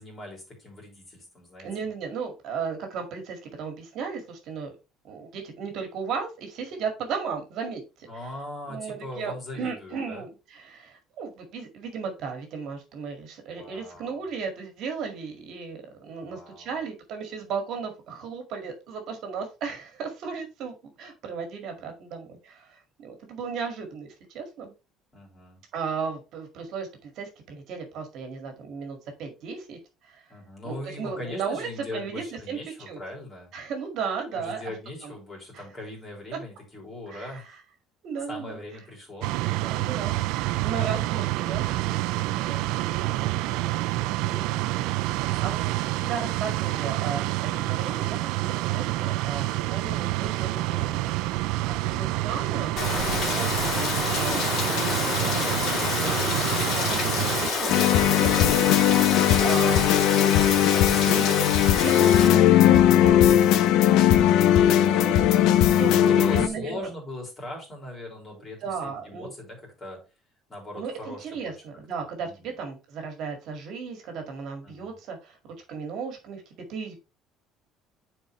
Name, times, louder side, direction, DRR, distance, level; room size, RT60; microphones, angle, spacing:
voice 1, 0.0-1.7 8.1-10.2 13.5-14.2 16.2-16.8 25.1-25.6 30.3-33.5 34.3-37.6 38.3-39.3 42.0-42.7 45.1-45.6 46.1-46.2 51.8-52.4 56.7-57.0 65.8-70.0 70.5-71.5 72.2-72.5 74.6-75.0, left 1 dB, 20° left, -1 dB, 3.6 m, -40 dB
voice 2, 1.6-4.7 5.0-8.1 8.7-24.7 25.7-29.8 30.0-30.3 30.6-32.6 32.9-33.0 33.5-34.6 35.0-35.1 35.5-35.6 37.1-37.3 38.0-38.6 39.6-42.0 42.4-42.6 43.0-43.6 44.2-51.2 51.7-52.7 53.4-54.5 54.8-56.0 57.0-57.8 58.1-60.0 60.9-64.4 64.8-65.4 65.8-66.9 68.6-69.3 70.7-76.9, right 5 dB, 50° right, 4 dB, 1.9 m, -35 dB
sound 1, 39.2-57.5, right 17 dB, 80° right, 0.4 m, -28 dB
Rain, 52.8-62.3, left 4 dB, 45° left, 2.7 m, -28 dB
sound 2, 57.7-66.5, left 11 dB, 65° left, 0.6 m, -19 dB
10.0 x 4.5 x 3.1 m, 0.29 s
cardioid pair, 170°, 0 cm